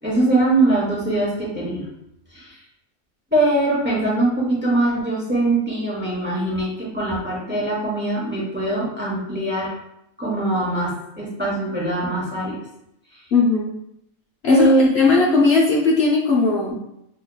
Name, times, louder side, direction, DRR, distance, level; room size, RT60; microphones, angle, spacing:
voice 1, 0.0-1.9 2.3-2.6 3.3-9.7 10.2-12.6 14.5-15.2, right 2 dB, 10° right, -6 dB, 1.0 m, -22 dB
voice 2, 13.3-13.7 14.4-16.7, left 4 dB, 60° left, -4 dB, 0.9 m, -17 dB
5.4 x 2.8 x 2.2 m, 0.80 s
omnidirectional pair, 1.3 m